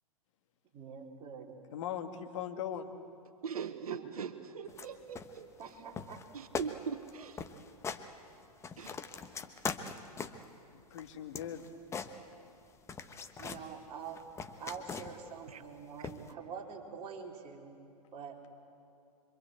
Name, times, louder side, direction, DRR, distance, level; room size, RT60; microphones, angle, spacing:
voice 1, 0.7-1.5 5.6-6.2 13.4-14.2 14.6-17.8 18.1-18.4, right 6 dB, 30° right, -1 dB, 4.2 m, -45 dB
voice 2, 1.7-3.0 7.5-7.8 8.7-9.0 10.7-11.6, left 9 dB, 50° left, 6 dB, 1.9 m, -40 dB
voice 3, 3.4-5.5 6.3-7.4 8.8-9.0 15.5-15.6 16.0-16.1, right 6 dB, 70° right, 9 dB, 1.2 m, -41 dB
sound 1, 4.7-4.9 5.2-5.7 6.0-6.3 6.5-6.7 7.0-7.1 7.4-8.0 8.4-10.5 10.9-12.6 12.9-13.7 14.1-15.3 16.0-16.3, left 5 dB, 15° left, 1.1 m, -41 dB
26.0 x 24.0 x 8.1 m, 2.6 s
figure-of-eight pair, 110°, 20 cm